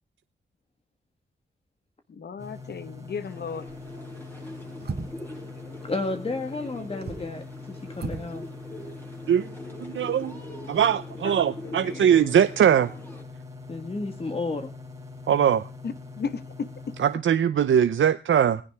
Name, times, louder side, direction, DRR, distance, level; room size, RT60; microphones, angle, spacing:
voice 1, 2.1-3.7 11.2-12.1 15.8-16.9, left 5 dB, 55° left, 13 dB, 1.3 m, -35 dB
sound 1, 2.4-17.2, left 3 dB, 15° right, 3.2 m, -43 dB
sound 2, 3.2-13.2, left 1 dB, 10° left, 4.8 m, -42 dB
sound 3, 3.7-4.0 4.8-5.4 6.8-7.3 7.9-8.3 8.6-8.7, right 4 dB, 55° right, 2.0 m, -35 dB
voice 2, 5.8-8.4 13.7-14.7, left 3 dB, 30° left, 6 dB, 1.6 m, -32 dB
voice 3, 9.8-10.3 10.7-12.9 15.3-15.6 17.0-18.6, right 9 dB, 80° right, 11 dB, 0.7 m, -21 dB
18.5 x 16.5 x 3.5 m, 0.34 s
wide cardioid pair, 180°, 20 cm